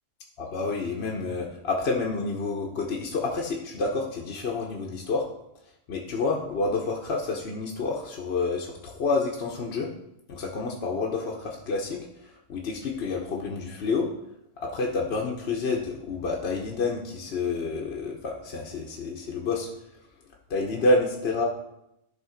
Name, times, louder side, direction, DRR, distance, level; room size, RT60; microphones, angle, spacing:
voice 1, 0.4-5.3 5.9-9.9 10.3-12.1 12.5-14.1 14.6-19.7 20.5-21.4, left 3 dB, 65° left, -1 dB, 1.1 m, -28 dB
11.0 x 3.7 x 5.0 m, 0.82 s
omnidirectional pair, 1.2 m